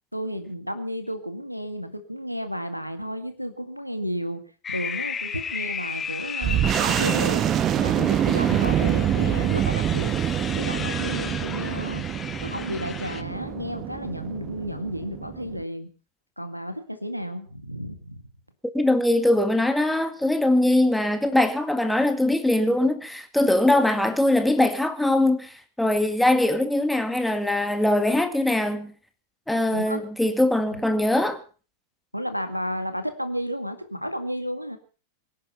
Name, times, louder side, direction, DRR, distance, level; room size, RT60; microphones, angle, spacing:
voice 1, 0.1-4.4 4.7-7.4 7.8-10.2 10.6-12.0 12.4-15.9 16.4-18.2 29.7-30.0 30.7-30.8 32.1-34.8, equal, 90° right, 2.0 m, -32 dB
sound 1, 4.6-13.2, left 6 dB, 20° left, 1.6 m, -35 dB
sound 2, 6.4-15.6, right 10 dB, 30° right, 1.3 m, -25 dB
voice 2, 18.7-28.9 29.5-31.4, left 1 dB, 5° left, 2.2 m, -22 dB
24.0 x 10.5 x 5.6 m
figure-of-eight pair, 90°, 0 cm